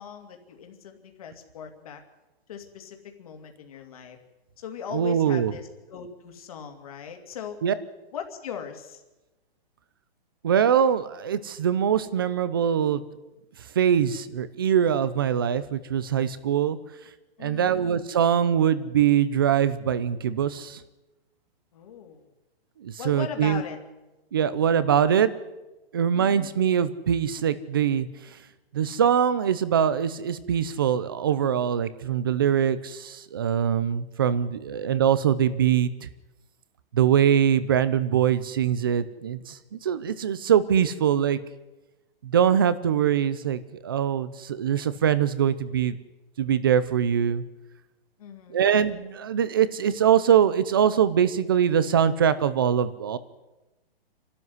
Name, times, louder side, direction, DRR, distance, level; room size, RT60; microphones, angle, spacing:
voice 1, 0.0-2.0 2.5-4.2 4.6-7.6 8.1-9.0 17.4-17.8 21.7-22.2 23.0-23.8 26.1-26.5 48.2-48.6, left 8 dB, 35° left, 4 dB, 2.7 m, -39 dB
voice 2, 4.9-5.5 7.6-7.7 10.4-13.0 13.7-16.8 17.4-20.8 22.8-23.6 24.3-25.3 25.9-28.1 28.7-36.1 36.9-41.4 42.2-46.0 46.4-47.4 48.5-53.2, right 8 dB, 20° right, 15 dB, 0.7 m, -23 dB
26.5 x 12.5 x 9.6 m, 1.1 s
hypercardioid pair, 180°, 30 cm